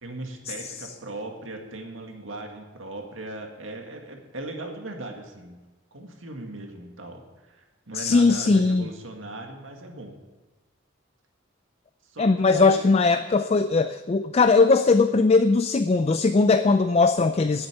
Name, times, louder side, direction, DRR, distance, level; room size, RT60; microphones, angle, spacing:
voice 1, 0.0-5.6 5.9-10.2 12.0-13.2, right 2 dB, 85° right, 3 dB, 2.0 m, -38 dB
voice 2, 7.9-8.9 12.2-17.7, left 3 dB, 30° left, 10 dB, 0.4 m, -19 dB
10.5 x 8.1 x 9.0 m, 1.2 s
head